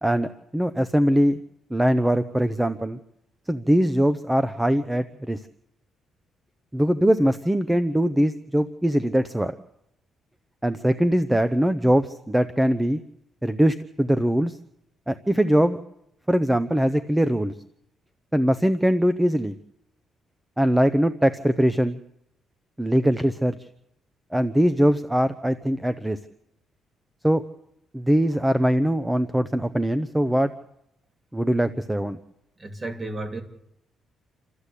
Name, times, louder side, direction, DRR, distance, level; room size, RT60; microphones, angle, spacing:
voice 1, 0.0-1.4 1.7-3.0 3.5-5.4 6.7-9.5 10.6-13.0 13.4-14.6 15.1-15.8 16.3-17.5 18.3-19.5 20.6-22.0 22.8-23.5 24.3-26.2 27.2-27.4 27.9-30.5 31.3-32.2, equal, 10° right, 12 dB, 1.0 m, -22 dB
voice 2, 32.6-33.4, right 2 dB, 25° right, 4 dB, 3.3 m, -32 dB
28.5 x 13.0 x 8.5 m, 0.79 s
cardioid pair, 90°, 0 cm